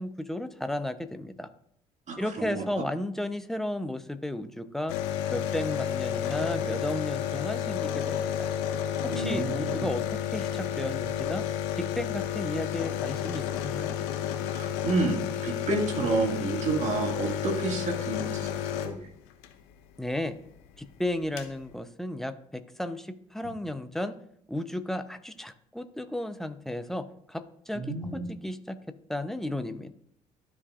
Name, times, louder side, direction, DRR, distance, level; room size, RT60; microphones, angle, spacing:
voice 1, 0.0-1.5 2.2-5.0 5.3-8.5 9.1-11.4 11.8-14.0 20.0-20.4 20.8-24.1 24.5-27.9 28.4-28.8 29.1-29.9, left 1 dB, ahead, 10 dB, 0.7 m, -34 dB
voice 2, 2.1-2.6 9.1-9.9 14.5-19.0 27.7-28.2, right 3 dB, 40° right, 0 dB, 2.2 m, -30 dB
sound 1, 4.9-19.5 20.8-20.9 21.1-21.5, left 10 dB, 70° left, 0.7 m, -31 dB
12.5 x 4.8 x 2.5 m, 0.67 s
figure-of-eight pair, 50°, 18 cm